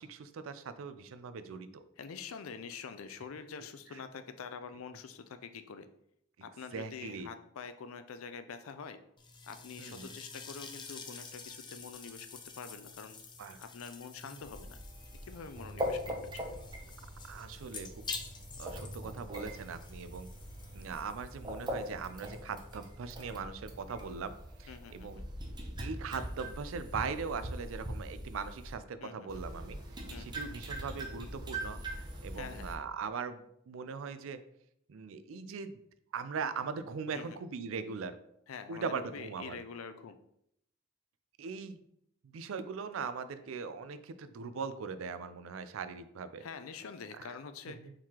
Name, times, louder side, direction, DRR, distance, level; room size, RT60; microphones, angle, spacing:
voice 1, 0.0-1.8 6.7-7.3 9.8-10.1 13.4-13.6 14.2-14.4 17.2-17.9 18.6-20.3 20.7-24.3 24.6-25.2 25.8-29.8 30.2-34.4 34.9-35.8 36.1-38.2 38.7-39.6 41.4-41.8 42.2-46.4 47.2-47.3 47.8-47.9, right 5 dB, 70° right, 12 dB, 0.4 m, -40 dB
voice 2, 2.0-5.9 6.4-9.0 9.4-13.2 13.6-14.8 15.3-16.4 24.7-25.3 29.0-29.4 30.1-30.4 32.3-32.8 37.1-37.4 38.5-40.2 46.4-47.8, left 6 dB, 80° left, 10 dB, 0.4 m, -46 dB
sound 1, 9.2-23.4, left 4 dB, 20° left, 0.4 m, -49 dB
sound 2, 14.4-28.7 29.3-32.8, equal, 20° right, 0.6 m, -42 dB
4.7 x 3.8 x 2.9 m, 0.73 s
head